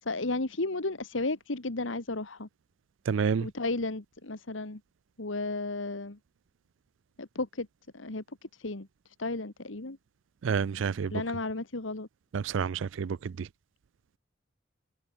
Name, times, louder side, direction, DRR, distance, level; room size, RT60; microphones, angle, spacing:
voice 1, 0.0-2.5 3.4-4.8 5.2-6.2 7.2-7.7 7.9-8.2 8.6-8.9 9.2-10.0 11.0-12.1, left 2 dB, 80° left, 1.8 m, -33 dB
voice 2, 3.1-3.5 10.4-11.1 12.3-13.5, right 6 dB, 75° right, 0.4 m, -29 dB
head